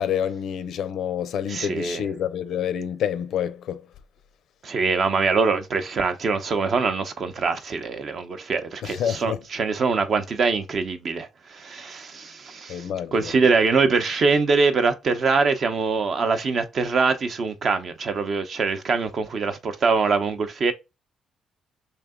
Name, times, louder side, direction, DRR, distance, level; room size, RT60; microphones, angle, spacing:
voice 1, 0.0-3.8 8.8-9.4 12.7-13.3, left 9 dB, 75° left, 0.5 m, -28 dB
voice 2, 1.5-2.0 4.6-20.7, right 4 dB, 55° right, 0.7 m, -23 dB
3.2 x 2.8 x 3.7 m
cardioid pair, 90°, 0 cm